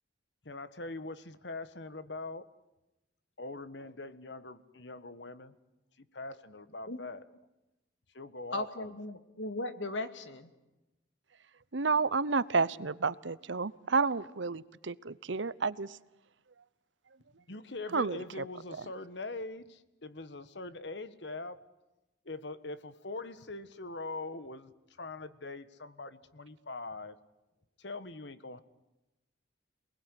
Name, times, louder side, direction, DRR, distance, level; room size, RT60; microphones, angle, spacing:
voice 1, 0.4-2.5 3.4-5.5 6.0-7.2 8.1-8.9 17.5-21.6 22.2-24.7 25.0-27.2 27.8-28.6, left 3 dB, 65° left, 13 dB, 1.5 m, -42 dB
voice 2, 8.5-10.5, left 2 dB, 85° left, 9 dB, 2.4 m, -37 dB
voice 3, 11.7-16.0 17.9-18.2, right 4 dB, 80° right, 18 dB, 0.9 m, -30 dB
28.0 x 20.5 x 10.0 m, 0.98 s
head